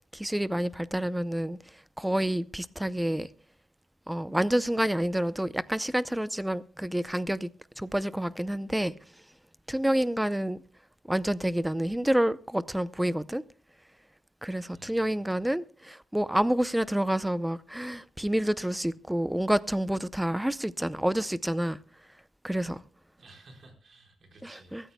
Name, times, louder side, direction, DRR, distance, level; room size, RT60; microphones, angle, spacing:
voice 1, 0.1-3.3 4.1-7.5 7.8-8.9 9.7-10.6 11.1-13.4 14.4-21.8 22.4-22.8 24.4-24.8, right 1 dB, 5° right, 0.5 m, -28 dB
voice 2, 14.7-15.5 23.2-24.9, right 2 dB, 50° right, 4.7 m, -55 dB
23.5 x 13.5 x 2.2 m
wide cardioid pair, 120°, 0 cm